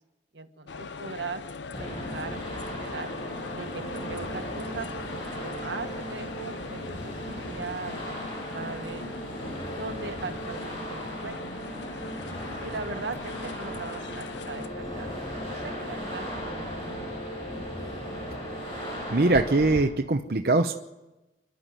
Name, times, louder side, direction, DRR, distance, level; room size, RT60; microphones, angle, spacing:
voice 1, 0.3-1.4 1.8-3.1 3.5-9.1 9.8-11.5 12.6-15.1 15.5-16.9, right 4 dB, 85° right, 6 dB, 1.6 m, -39 dB
sound 1, 0.7-14.7, left 4 dB, 90° left, 0.7 m, -40 dB
sound 2, 1.7-19.8, equal, 30° left, 7.2 m, -36 dB
voice 2, 19.1-20.7, right 2 dB, 55° right, 4 dB, 0.8 m, -22 dB
29.5 x 12.0 x 7.6 m, 1.0 s
head